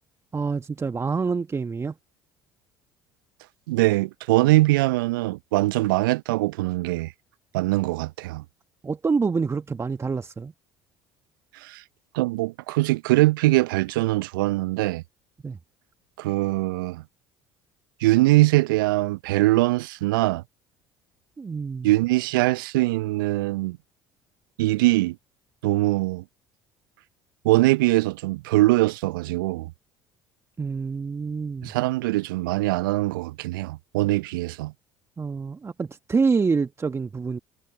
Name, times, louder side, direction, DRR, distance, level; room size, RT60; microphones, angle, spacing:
voice 1, 0.3-1.9 8.8-10.5 15.4-15.6 21.4-21.9 30.6-31.7 35.2-37.4, right 5 dB, 25° right, 1.4 m, -26 dB
voice 2, 3.7-7.1 7.5-8.4 11.5-11.8 12.1-15.0 16.2-17.0 18.0-20.4 21.8-23.8 24.6-25.2 25.6-26.2 27.4-29.7 31.6-34.7, right 19 dB, 70° right, 0.8 m, -22 dB
figure-of-eight pair, 60°, 12 cm